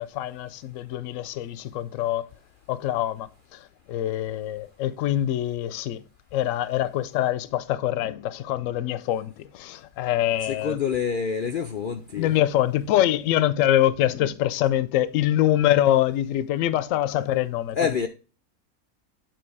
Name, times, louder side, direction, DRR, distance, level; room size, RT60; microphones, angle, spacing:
voice 1, 0.0-2.2 2.7-3.6 3.9-6.0 6.3-10.8 12.1-18.1, left 12 dB, 70° left, 0.9 m, -24 dB
voice 2, 10.4-12.3 17.8-18.1, left 6 dB, 85° left, 0.4 m, -27 dB
8.9 x 3.3 x 4.7 m
omnidirectional pair, 1.6 m